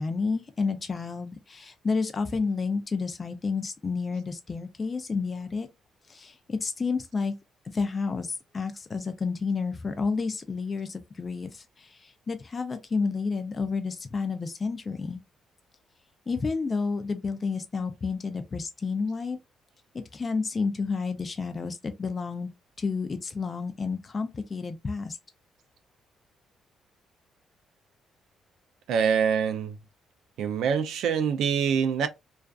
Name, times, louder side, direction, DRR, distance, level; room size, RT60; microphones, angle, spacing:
voice 1, 0.0-5.7 6.1-7.3 7.7-15.2 16.3-19.4 20.1-22.5 22.8-25.2, left 4 dB, 35° left, 0.4 m, -30 dB
voice 2, 28.9-29.8 30.4-32.1, right 7 dB, 80° right, 0.3 m, -25 dB
2.4 x 2.4 x 2.3 m
cardioid pair, 90°, 0 cm